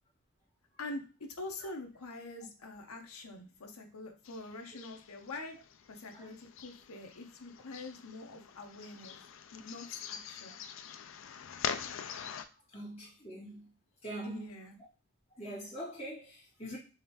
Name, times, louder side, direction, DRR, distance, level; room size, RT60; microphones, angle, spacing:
voice 1, 0.8-5.6 5.9-9.1 9.5-10.6 14.2-14.8, left 2 dB, 80° left, 0.8 m, -45 dB
sound 1, 4.2-12.5, left 8 dB, 60° left, 0.3 m, -44 dB
voice 2, 12.7-13.7 14.0-14.5 15.3-16.8, right 1 dB, 30° left, 2.0 m, -43 dB
3.6 x 3.1 x 2.9 m
head